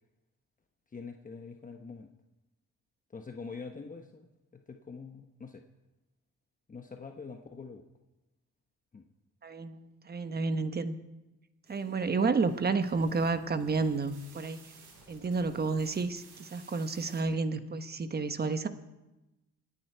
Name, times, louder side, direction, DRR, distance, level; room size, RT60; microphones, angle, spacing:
voice 1, 0.9-2.1 3.1-5.6 6.7-7.8 8.9-9.1 12.1-12.3, left 4 dB, 25° left, 4 dB, 1.1 m, -45 dB
voice 2, 9.4-10.9 11.7-14.6 15.1-18.7, right 4 dB, 30° right, 10 dB, 1.2 m, -31 dB
sound 1, 11.6-17.2, right 4 dB, 85° right, 5.8 m, -56 dB
26.5 x 9.8 x 4.6 m, 1.0 s
cardioid pair, 90°, 30 cm